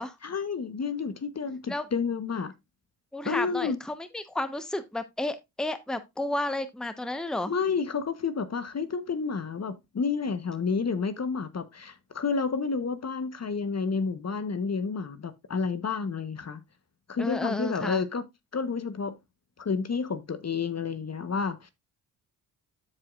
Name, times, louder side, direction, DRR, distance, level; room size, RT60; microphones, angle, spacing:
voice 1, 0.2-2.5 3.2-3.8 7.5-16.6 17.1-18.2 18.5-19.2 19.6-21.7, left 5 dB, 35° left, 1.0 m, -30 dB
voice 2, 3.1-7.5 17.2-18.0, left 1 dB, ahead, 1.0 m, -32 dB
13.5 x 4.8 x 2.4 m
hypercardioid pair, 50°, 46 cm